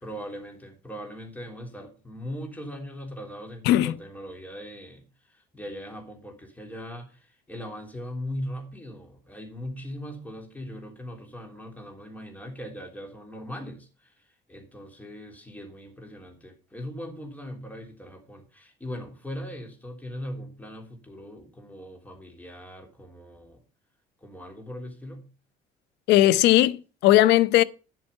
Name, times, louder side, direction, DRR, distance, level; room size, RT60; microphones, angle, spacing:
voice 1, 0.0-23.6 24.2-25.2, equal, 10° left, 3.4 m, -40 dB
voice 2, 26.1-27.6, left 15 dB, 85° left, 0.7 m, -18 dB
10.5 x 7.7 x 5.4 m
cardioid pair, 110°, 17 cm